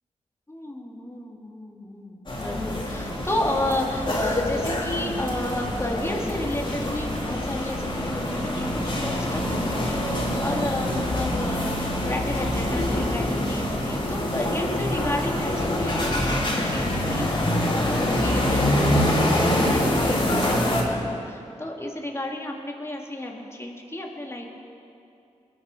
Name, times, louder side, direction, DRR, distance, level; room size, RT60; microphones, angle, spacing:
voice 1, 0.5-24.5, left 1 dB, 20° left, 0 dB, 2.5 m, -32 dB
sound 1, 2.3-20.8, left 1 dB, 40° left, 3.0 m, -25 dB
21.0 x 7.6 x 5.3 m, 2.6 s
cardioid pair, 45°, 12 cm